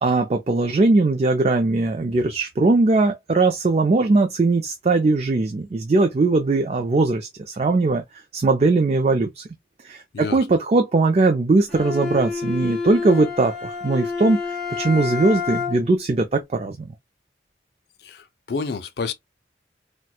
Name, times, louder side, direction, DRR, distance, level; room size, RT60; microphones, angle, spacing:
voice 1, 0.0-8.0 8.3-9.4 9.8-16.9, right 3 dB, 35° right, 0.3 m, -20 dB
Bowed string instrument, 11.7-16.0, left 5 dB, 5° left, 1.1 m, -29 dB
voice 2, 18.0-19.1, left 4 dB, 65° left, 0.4 m, -29 dB
4.2 x 2.2 x 2.3 m
head